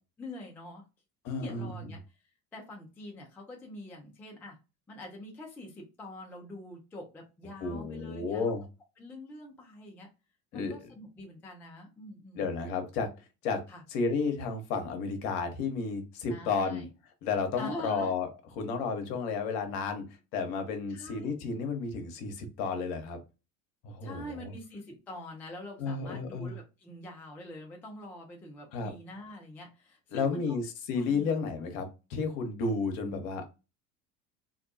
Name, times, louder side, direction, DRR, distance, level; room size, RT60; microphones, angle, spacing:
voice 1, 0.2-0.8 1.4-2.0 2.5-4.6 4.9-8.5 9.0-10.1 10.5-12.5 13.7-13.8 16.3-16.9 17.6-18.1 20.9-21.5 24.0-30.6 30.9-31.3, left 1 dB, 5° left, 0 dB, 0.3 m, -45 dB
voice 2, 1.2-1.9 7.6-8.6 10.5-10.7 12.3-13.1 13.4-13.6 13.9-16.8 17.2-18.3 18.6-20.1 20.3-23.2 23.8-24.5 25.8-26.5 28.7-28.9 30.1-33.6, left 4 dB, 55° left, 6 dB, 0.8 m, -32 dB
2.6 x 2.2 x 2.5 m, 0.29 s
figure-of-eight pair, 70°, 49 cm